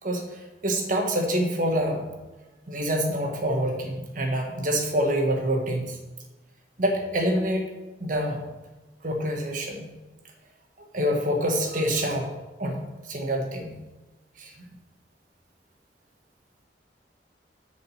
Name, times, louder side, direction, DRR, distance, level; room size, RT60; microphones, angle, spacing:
voice 1, 0.0-2.0 2.7-6.0 6.8-7.7 8.0-8.4 9.0-9.9 10.9-12.3 12.6-13.7 14.4-14.5, equal, 50° right, 2 dB, 1.4 m, -26 dB
7.0 x 5.2 x 7.2 m, 1.1 s
head